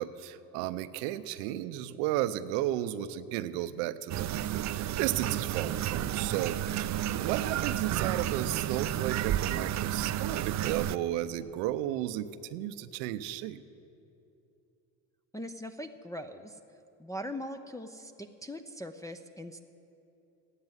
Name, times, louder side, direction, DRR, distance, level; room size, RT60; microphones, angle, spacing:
voice 1, 0.0-13.6, right 13 dB, 85° right, 13 dB, 0.7 m, -34 dB
sound 1, 4.1-11.0, right 12 dB, 40° right, 0.5 m, -31 dB
voice 2, 15.3-16.6 17.0-19.6, equal, 5° left, 3 dB, 0.6 m, -41 dB
13.5 x 9.9 x 9.1 m, 2.8 s
supercardioid pair, 85°, 46 cm